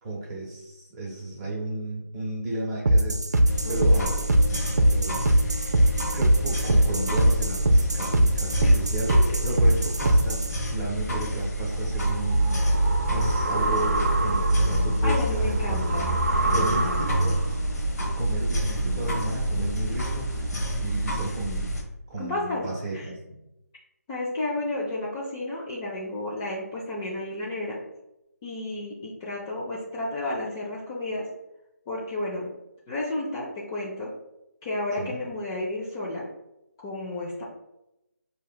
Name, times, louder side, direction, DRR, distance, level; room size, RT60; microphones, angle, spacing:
voice 1, 0.0-4.2 4.5-5.5 6.0-9.2 9.4-12.6 13.1-16.0 16.5-17.6 18.1-20.5 20.8-21.7 22.1-23.4 35.0-35.2, right 2 dB, 20° right, -4 dB, 0.9 m, -33 dB
sound 1, 2.8-10.5, right 1 dB, 85° right, 0.5 m, -21 dB
sound 2, 3.4-21.8, right 1 dB, 75° left, 0.9 m, -27 dB
voice 2, 3.6-4.2 8.6-8.7 15.0-16.1 16.4-17.3 22.2-22.6 22.9-23.1 24.1-27.8 28.4-31.2 31.9-32.5 32.9-34.1 34.6-36.3 36.8-37.4, left 2 dB, 15° left, -6 dB, 0.4 m, -32 dB
sound 3, 11.8-17.6, right 2 dB, 60° right, 0.8 m, -29 dB
4.7 x 2.8 x 2.3 m, 0.91 s
figure-of-eight pair, 160°, 9 cm